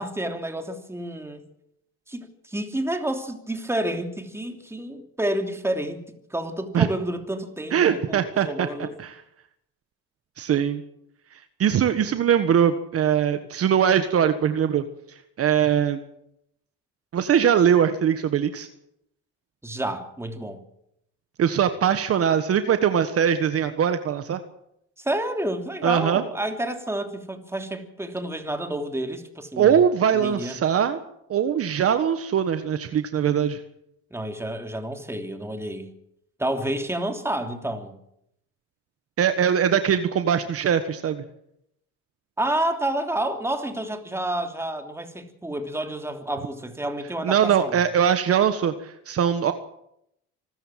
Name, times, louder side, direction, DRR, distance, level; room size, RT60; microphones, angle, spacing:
voice 1, 0.0-1.4 2.1-6.0 6.3-8.9 19.6-20.6 25.0-29.8 30.1-30.5 34.1-35.9 36.4-37.9 42.4-47.8, right 1 dB, 10° right, 5 dB, 2.9 m, -29 dB
voice 2, 7.7-9.1 10.4-10.8 11.6-14.8 15.4-16.0 17.1-18.7 21.4-24.4 25.8-26.2 29.6-31.0 31.3-33.6 39.2-41.2 47.2-49.5, right 8 dB, 45° right, 9 dB, 1.4 m, -21 dB
25.5 x 14.0 x 7.6 m, 0.77 s
cardioid pair, 110°, 32 cm